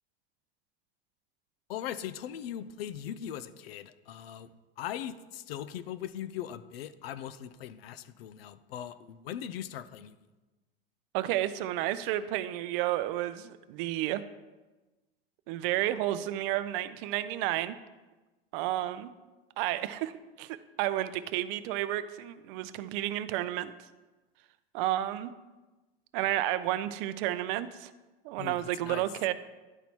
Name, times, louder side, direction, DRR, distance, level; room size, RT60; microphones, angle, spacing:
voice 1, 1.7-4.5 4.8-10.2 28.4-29.1, left 10 dB, 75° left, 14 dB, 0.5 m, -40 dB
voice 2, 11.1-14.2 15.5-17.8 18.5-19.1 19.6-20.1 20.4-23.7 24.7-25.3 26.1-27.9 28.2-29.3, right 14 dB, 60° right, 13 dB, 0.6 m, -31 dB
11.0 x 4.0 x 4.4 m, 1.2 s
hypercardioid pair, 85°, 30 cm